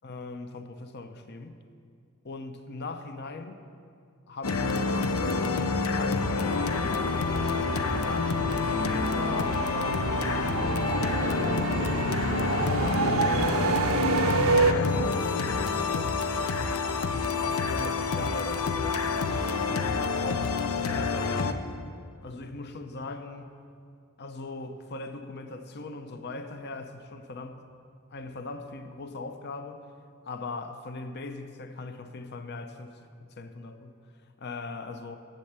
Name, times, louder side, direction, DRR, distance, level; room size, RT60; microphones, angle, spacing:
voice 1, 0.0-1.6 2.2-3.6 4.3-7.6 8.1-12.1 12.7-13.8 14.2-16.2 17.4-19.1 20.2-21.7 22.2-23.5 24.2-27.6 28.1-29.9 30.2-33.0 33.4-33.9 34.4-35.2, left 3 dB, 50° left, 8 dB, 0.7 m, -39 dB
sound 1, 4.4-21.5, left 4 dB, 90° left, 0.7 m, -28 dB
sound 2, 6.5-14.7, right 4 dB, 70° right, 0.5 m, -29 dB
10.5 x 7.9 x 8.1 m, 2.3 s
head